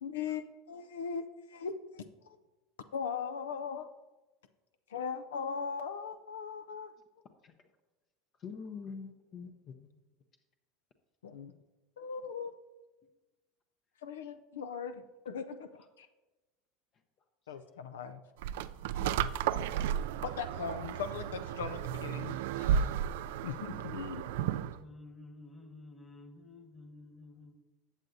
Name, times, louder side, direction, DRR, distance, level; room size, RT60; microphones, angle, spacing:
voice 1, 0.0-2.4 2.9-3.9 4.9-6.9 11.2-11.5 12.0-12.5 14.0-16.1 17.5-18.2 20.2-22.9 23.4-24.2, left 6 dB, 90° left, 0.4 m, -39 dB
voice 2, 8.4-9.9 15.8-15.9 17.5-17.6 23.6-23.9, left 5 dB, 45° left, 0.7 m, -45 dB
sound 1, 18.4-24.8, right 9 dB, 75° right, 0.3 m, -33 dB
voice 3, 24.4-27.5, left 2 dB, 20° left, 1.5 m, -52 dB
14.0 x 7.7 x 2.7 m
hypercardioid pair, 95°, 0 cm